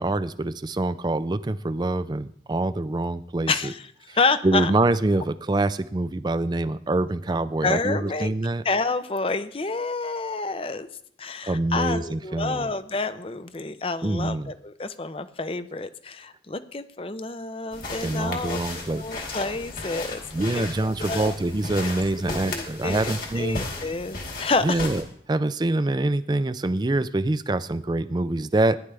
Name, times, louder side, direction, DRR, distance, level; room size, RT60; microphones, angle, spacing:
voice 1, 0.0-3.7 4.1-4.2 4.4-8.6 11.5-12.7 14.0-14.5 18.0-19.0 20.3-23.6 24.6-28.8, right 2 dB, 25° right, 14 dB, 0.4 m, -25 dB
voice 2, 3.5-3.8 4.2-4.7 7.6-8.3 8.6-10.9 11.2-18.6 18.9-20.2 20.6-21.3 22.3-24.9, left 3 dB, 30° left, 12 dB, 0.6 m, -28 dB
sound 1, 17.7-25.0, left 2 dB, 50° left, 2.5 m, -35 dB
16.5 x 10.5 x 3.4 m, 0.66 s
head